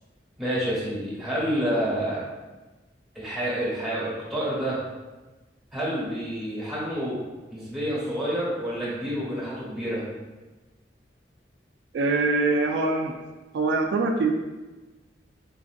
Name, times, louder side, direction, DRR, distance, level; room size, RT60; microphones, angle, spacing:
voice 1, 0.4-2.2 3.1-4.8 5.7-7.2 7.5-10.1, equal, ahead, -8 dB, 1.1 m, -28 dB
voice 2, 11.9-13.2 13.5-14.3, right 3 dB, 75° right, 3 dB, 0.3 m, -23 dB
3.9 x 2.5 x 2.5 m, 1.2 s
head